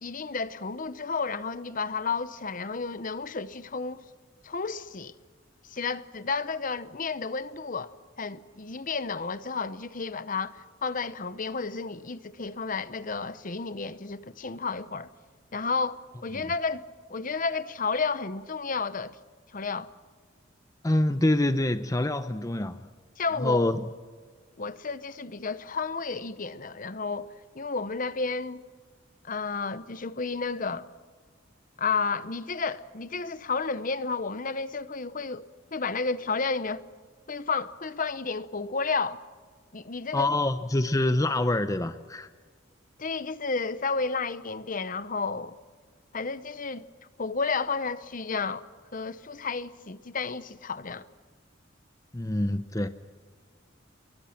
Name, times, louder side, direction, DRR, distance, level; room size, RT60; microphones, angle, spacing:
voice 1, 0.0-4.0 4.4-5.1 5.7-7.9 8.2-15.1 15.5-16.8 17.1-19.2 19.5-19.9 23.2-23.7 24.6-28.6 29.2-30.9 31.8-36.8 37.3-39.2 39.7-40.3 43.0-45.6 46.1-46.8 47.2-48.6 48.9-51.1, left 4 dB, 45° left, 0.9 m, -32 dB
voice 2, 20.8-22.9 23.4-23.8 40.1-42.3 52.1-52.9, left 1 dB, 15° left, 0.7 m, -26 dB
28.5 x 22.5 x 5.9 m
head